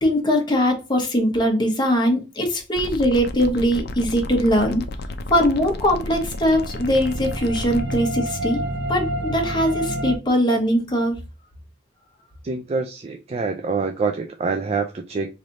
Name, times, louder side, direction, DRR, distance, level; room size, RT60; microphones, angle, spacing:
voice 1, 0.0-4.8 5.3-8.6 8.9-11.2, equal, 25° left, 1.0 m, -21 dB
sound 1, 2.7-8.0, left 1 dB, 60° left, 0.5 m, -32 dB
sound 2, 5.8-10.2, right 1 dB, 75° right, 0.6 m, -29 dB
voice 2, 12.4-15.4, right 4 dB, 35° right, 0.3 m, -26 dB
3.2 x 2.7 x 3.9 m
head